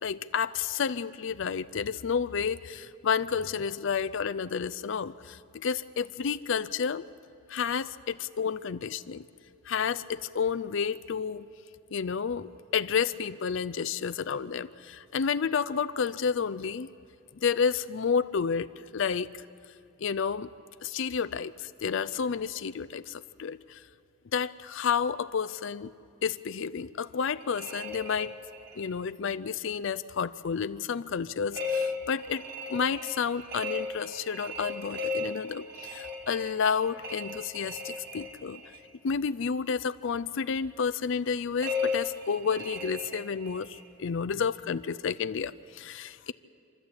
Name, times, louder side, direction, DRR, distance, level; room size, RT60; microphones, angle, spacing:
voice 1, 0.0-7.1 7.5-9.2 9.6-11.5 11.9-16.9 17.4-19.4 20.0-20.5 20.8-23.8 24.3-25.9 26.2-28.4 28.8-32.4 32.7-38.6 39.0-46.3, left 6 dB, 65° left, 15 dB, 0.4 m, -30 dB
sound 1, 27.4-28.9 31.5-38.9 41.6-43.9, left 3 dB, 50° right, 2.0 m, -36 dB
27.0 x 13.0 x 8.7 m, 2.6 s
head